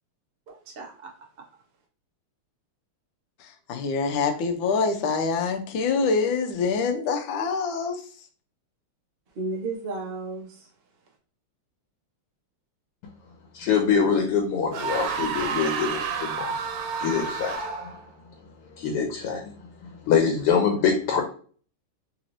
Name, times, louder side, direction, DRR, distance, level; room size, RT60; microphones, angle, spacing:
voice 1, 0.5-1.1 9.4-10.7, right 3 dB, 55° right, -1 dB, 0.6 m, -34 dB
voice 2, 3.4-8.0, left 4 dB, 70° left, 4 dB, 1.3 m, -25 dB
voice 3, 13.5-16.5 17.0-17.6 18.7-19.5 20.1-21.2, left 6 dB, 90° left, 2 dB, 1.7 m, -24 dB
sound 1, 14.7-18.1, right 5 dB, 85° right, 1.6 m, -30 dB
3.9 x 3.0 x 2.6 m, 0.43 s
omnidirectional pair, 2.4 m